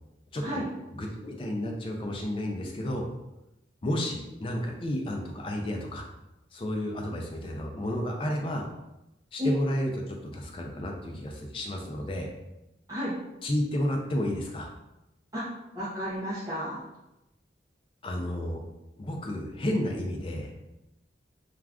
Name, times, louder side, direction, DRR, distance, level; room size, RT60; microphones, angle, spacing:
voice 1, 0.3-0.6 0.9-3.1 3.8-6.0 6.5-8.7 9.3-12.3 13.4-14.7 18.0-18.6 19.0-20.5, left 1 dB, 30° left, 1 dB, 0.4 m, -31 dB
voice 2, 15.7-16.8, left 1 dB, 20° right, -11 dB, 0.6 m, -32 dB
2.4 x 2.3 x 3.4 m, 0.94 s
head